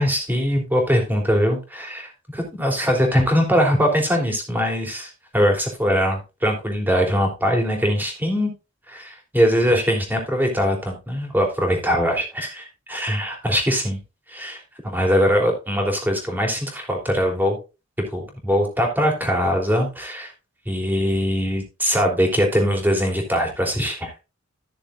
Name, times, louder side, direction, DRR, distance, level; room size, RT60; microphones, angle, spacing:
voice 1, 0.0-8.5 8.9-14.0 14.3-17.6 18.1-20.3 20.6-24.2, equal, 10° right, 2 dB, 3.3 m, -22 dB
15.0 x 6.7 x 2.5 m, 0.29 s
head